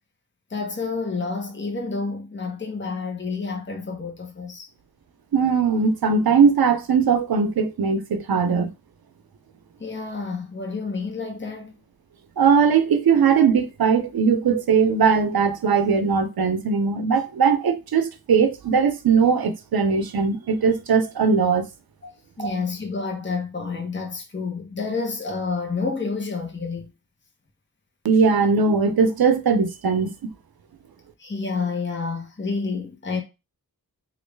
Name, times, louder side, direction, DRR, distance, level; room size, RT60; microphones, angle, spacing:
voice 1, 0.5-4.7 9.8-11.7 22.0-22.1 22.4-26.9 31.2-33.2, left 4 dB, 30° left, 0.9 m, -29 dB
voice 2, 5.3-8.7 12.4-21.6 22.4-22.5 28.0-30.1, right 5 dB, 80° right, 0.6 m, -20 dB
3.0 x 2.5 x 3.3 m
wide cardioid pair, 55°, 36 cm